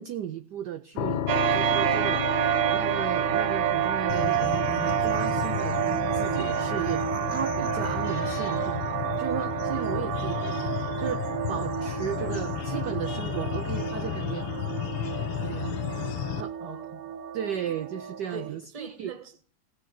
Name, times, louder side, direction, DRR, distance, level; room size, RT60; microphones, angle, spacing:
voice 1, 0.0-2.3 2.7-7.0 7.3-8.8 9.2-11.2 11.5-14.5 15.4-15.7 16.4-16.5 17.3-19.1, right 9 dB, 70° right, 1.0 m, -35 dB
sound 1, 0.9-15.8, left 11 dB, 70° left, 1.4 m, -38 dB
sound 2, 1.3-18.5, right 10 dB, 85° right, 1.8 m, -29 dB
sound 3, 4.1-16.4, left 12 dB, 85° left, 1.8 m, -33 dB
voice 2, 16.6-17.1 17.6-17.8 18.3-19.4, right 3 dB, 25° right, 0.9 m, -42 dB
16.5 x 6.5 x 5.9 m
omnidirectional pair, 2.4 m